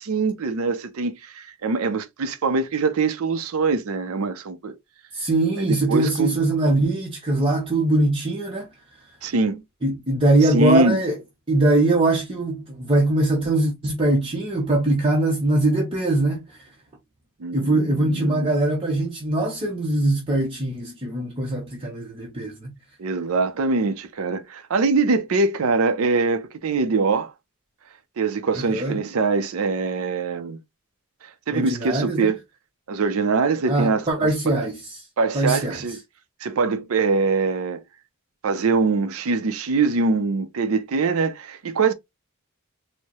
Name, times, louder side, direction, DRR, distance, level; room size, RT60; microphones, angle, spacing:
voice 1, 0.0-4.7 5.6-6.3 9.2-9.6 10.4-11.0 17.4-18.5 23.0-27.3 28.2-30.6 31.2-32.4 32.9-34.7 35.2-36.0 36.4-37.8 38.4-41.9, right 4 dB, 75° right, 0.5 m, -23 dB
voice 2, 5.1-8.7 9.8-11.2 11.5-16.6 17.5-22.7 28.5-29.0 31.5-32.3 33.7-35.1 35.3-35.8, right 2 dB, 25° right, 0.7 m, -22 dB
4.5 x 2.1 x 2.9 m
head